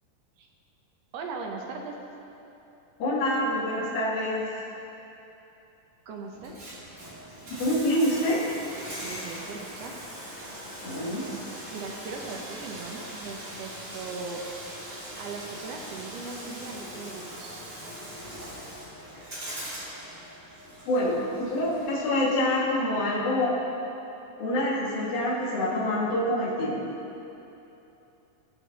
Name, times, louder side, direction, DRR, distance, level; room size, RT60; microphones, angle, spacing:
voice 1, 1.1-1.9 6.1-6.5 9.0-9.9 11.7-14.4 15.1-17.6, right 4 dB, 85° right, 1 dB, 1.4 m, -39 dB
voice 2, 3.0-4.4 7.5-8.4 10.8-11.2 20.9-23.5 24.4-26.8, left 1 dB, 50° left, -6 dB, 2.6 m, -26 dB
Bathtub (filling or washing), 6.3-22.3, equal, 35° right, 1.0 m, -41 dB
17.0 x 6.6 x 4.0 m, 2.9 s
omnidirectional pair, 4.0 m